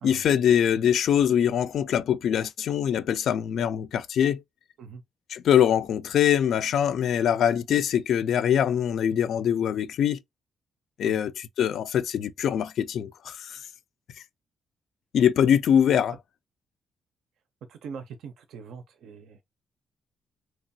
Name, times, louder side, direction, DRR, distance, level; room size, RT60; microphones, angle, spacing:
voice 1, 0.0-4.4 5.3-10.2 11.0-13.6 15.1-16.1, left 9 dB, 70° left, 0.3 m, -23 dB
voice 2, 17.7-19.4, right 6 dB, 75° right, 0.4 m, -42 dB
2.9 x 2.2 x 2.6 m
cardioid pair, 90°, 0 cm